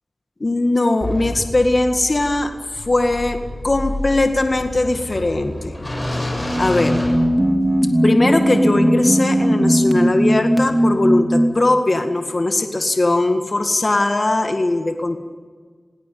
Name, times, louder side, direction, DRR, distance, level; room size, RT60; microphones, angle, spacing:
voice 1, 0.4-3.4 3.6-5.7 6.1-7.0 8.0-15.2, left 2 dB, 45° left, 6 dB, 1.9 m, -20 dB
sound 1, 1.0-7.9, left 1 dB, 25° left, 7.5 m, -29 dB
sound 2, 6.5-11.7, equal, 10° right, 3.3 m, -18 dB
22.0 x 17.5 x 9.5 m, 1.5 s
wide cardioid pair, 55°, 0 cm